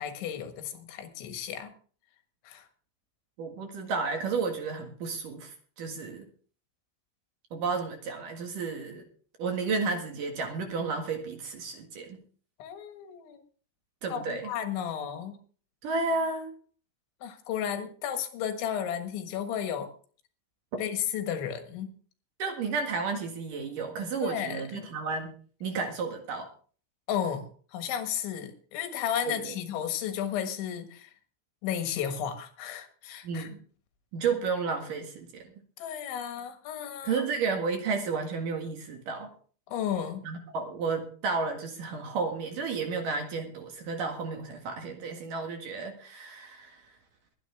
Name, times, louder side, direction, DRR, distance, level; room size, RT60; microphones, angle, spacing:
voice 1, 0.0-1.7 2.5-2.7 12.6-13.4 14.1-15.4 17.2-19.9 20.8-21.9 24.2-24.9 27.1-31.1 31.6-33.5 35.8-37.2 39.7-40.3, left 9 dB, 85° left, 7 dB, 3.9 m, -33 dB
voice 2, 3.4-6.2 7.5-9.1 9.4-12.2 14.0-14.5 15.8-16.5 22.4-26.5 29.3-29.5 33.2-33.6 34.1-35.5 37.0-39.3 40.2-46.8, right 4 dB, 55° right, 3 dB, 3.0 m, -32 dB
22.5 x 9.1 x 3.5 m, 0.42 s
omnidirectional pair, 5.2 m